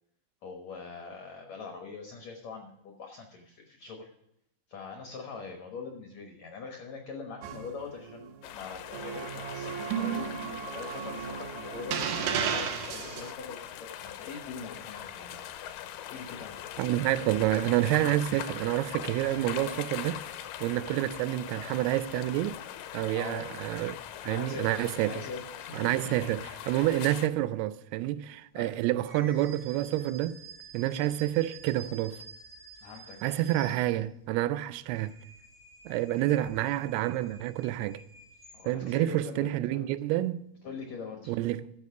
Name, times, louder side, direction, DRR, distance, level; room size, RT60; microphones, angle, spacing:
voice 1, 0.4-4.1 4.7-15.4 16.1-16.6 23.1-23.5 24.2-26.2 28.5-28.8 32.8-33.4 38.5-39.9 40.6-41.3, left 5 dB, 65° left, 1.9 m, -43 dB
sound 1, 7.4-8.3 8.9-13.3, right 8 dB, 70° right, 2.1 m, -34 dB
sound 2, 8.4-27.3, left 11 dB, 85° left, 2.7 m, -41 dB
voice 2, 16.8-20.2 20.6-22.6 22.9-24.0 24.2-25.2 25.7-30.3 30.7-32.2 33.2-35.1 35.9-38.0 38.7-40.5 41.3-41.7, right 14 dB, 90° right, 2.6 m, -28 dB
sound 3, 29.0-34.3 34.7-39.0, right 4 dB, 15° right, 2.6 m, -50 dB
12.5 x 7.0 x 4.7 m
omnidirectional pair, 4.5 m